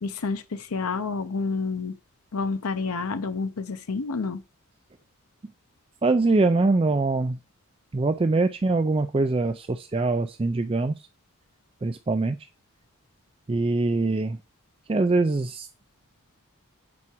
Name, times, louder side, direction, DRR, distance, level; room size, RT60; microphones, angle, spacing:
voice 1, 0.0-2.0 2.3-4.4, left 4 dB, 90° left, 0.7 m, -29 dB
voice 2, 6.0-7.4 7.9-11.1 11.8-12.4 13.5-14.4 14.9-15.7, right 3 dB, 25° right, 0.4 m, -23 dB
8.5 x 4.7 x 4.5 m
head